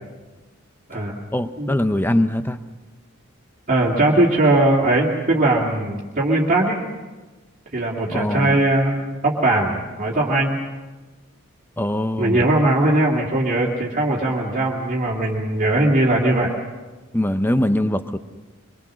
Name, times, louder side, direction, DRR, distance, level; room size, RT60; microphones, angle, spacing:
voice 1, 1.3-2.6 8.1-8.6 11.8-12.4 17.1-18.2, left 1 dB, 10° left, 10 dB, 0.8 m, -22 dB
voice 2, 3.7-6.8 7.7-10.6 12.2-16.5, right 2 dB, 40° right, -3 dB, 2.5 m, -19 dB
24.0 x 23.5 x 6.3 m, 1.2 s
head